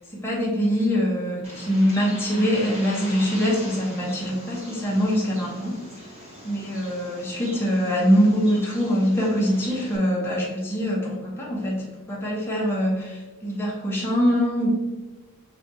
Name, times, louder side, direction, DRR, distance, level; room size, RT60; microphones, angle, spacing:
voice 1, 0.1-5.8 6.4-14.7, equal, 10° left, -5 dB, 0.8 m, -23 dB
Bird, 1.4-10.0, equal, 30° right, 0.8 m, -41 dB
6.3 x 2.4 x 2.6 m, 1.2 s
head